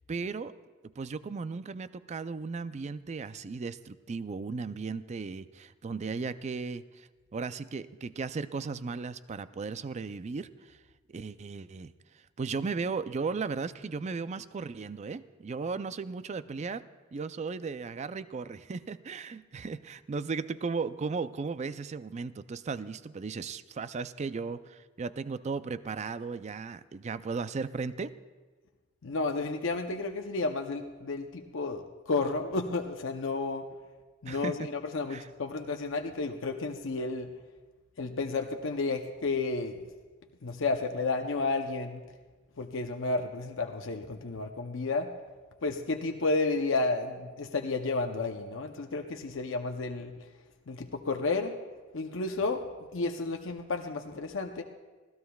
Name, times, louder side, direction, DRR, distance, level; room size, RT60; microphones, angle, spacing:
voice 1, 0.1-0.5 0.8-10.8 11.1-11.9 12.4-28.2 34.3-34.7 35.1-35.3, right 4 dB, 35° right, 14 dB, 0.4 m, -36 dB
voice 2, 29.0-33.6 34.2-37.3 38.0-39.8 40.4-42.0 42.6-45.1 45.6-50.1 50.7-51.7 51.9-52.6 52.9-54.6, left 3 dB, 65° left, 4 dB, 0.7 m, -32 dB
25.5 x 16.5 x 2.3 m, 1.3 s
head